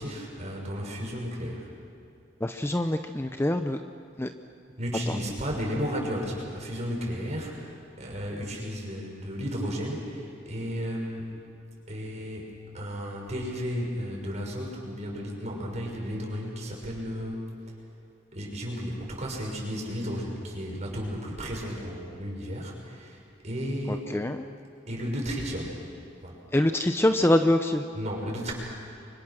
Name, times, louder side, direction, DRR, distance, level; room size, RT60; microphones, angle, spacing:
voice 1, 0.0-1.7 4.8-11.3 11.9-17.4 18.3-24.1 24.9-25.8 26.2-26.4 27.9-28.5, equal, 40° right, -1 dB, 6.5 m, -33 dB
voice 2, 2.4-3.8 4.2-4.3 24.1-24.4 26.5-27.8, left 1 dB, 15° left, 7 dB, 0.7 m, -24 dB
30.0 x 24.5 x 6.5 m, 2.6 s
head